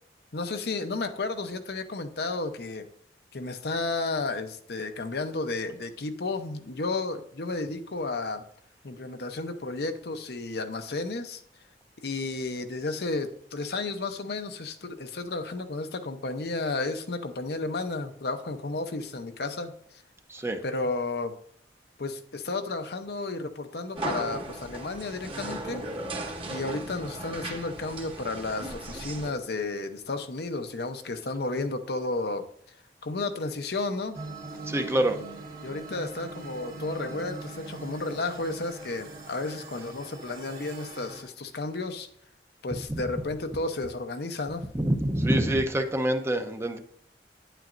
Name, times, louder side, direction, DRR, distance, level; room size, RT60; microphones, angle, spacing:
voice 1, 0.3-2.9 3.3-8.4 8.8-11.4 12.0-19.7 20.6-21.4 22.0-25.8 26.5-32.5 33.0-34.2 35.6-42.1 42.6-44.7, left 3 dB, 65° left, 7 dB, 0.8 m, -32 dB
sound 1, 24.0-29.3, right 2 dB, 30° right, 1.3 m, -36 dB
sound 2, 34.1-41.2, right 3 dB, 55° right, 2.1 m, -41 dB
voice 2, 34.7-35.2 42.9-43.1 44.7-46.8, right 1 dB, 15° right, 5 dB, 0.7 m, -26 dB
9.5 x 9.0 x 2.6 m, 0.63 s
head